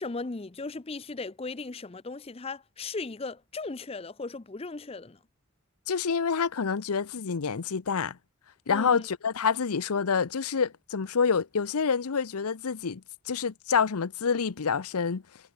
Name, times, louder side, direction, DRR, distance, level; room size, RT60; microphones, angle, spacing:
voice 1, 0.0-5.2 8.7-9.1, left 3 dB, 25° left, 0.6 m, -37 dB
voice 2, 5.9-8.2 8.7-15.2, left 6 dB, 85° left, 0.7 m, -27 dB
head